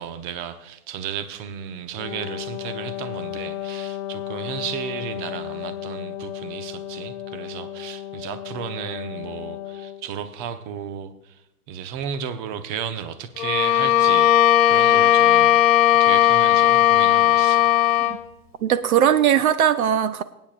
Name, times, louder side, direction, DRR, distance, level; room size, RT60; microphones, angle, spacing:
voice 1, 0.0-11.4 11.7-15.6 16.0-17.7, right 8 dB, 35° right, 10 dB, 0.9 m, -33 dB
Wind instrument woodwind instrument, 1.9-10.1, left 12 dB, 40° left, 0.7 m, -34 dB
Bowed string instrument, 13.4-18.2, left 12 dB, 60° left, 1.3 m, -17 dB
voice 2, 18.6-20.2, right 9 dB, 65° right, 12 dB, 0.8 m, -19 dB
24.0 x 9.2 x 2.5 m, 0.92 s
hypercardioid pair, 125°, 46 cm